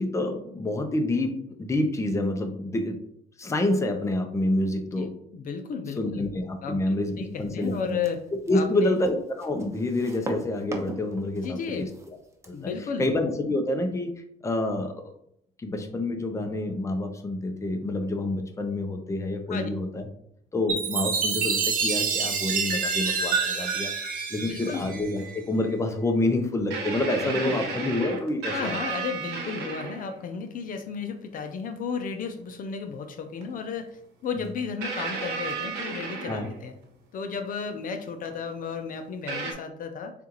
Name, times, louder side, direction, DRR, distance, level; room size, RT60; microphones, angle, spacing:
voice 1, 0.0-3.0 3.4-5.1 6.0-8.0 8.5-11.9 12.5-12.7 13.0-14.1 14.4-15.0 15.6-20.1 20.5-23.9 24.3-28.7 34.3-34.4 36.3-36.5, left 1 dB, 15° left, 5 dB, 0.7 m, -28 dB
voice 2, 5.0-6.3 6.6-8.9 11.3-11.9 12.5-13.1 19.5-19.7 24.4-24.9 27.2-27.6 28.5-36.7 37.1-40.1, left 6 dB, 55° left, 6 dB, 0.6 m, -34 dB
sound 1, 7.4-12.6, right 1 dB, 15° right, 0.8 m, -40 dB
Chime, 20.7-25.4, right 5 dB, 55° right, 1.0 m, -27 dB
sound 2, 25.2-25.3 26.7-30.2 31.5-31.6 33.4-33.5 34.8-36.9 38.3-38.4 39.3-39.5, right 4 dB, 85° right, 1.1 m, -33 dB
6.8 x 2.5 x 3.0 m, 0.72 s
cardioid pair, 110°, 17 cm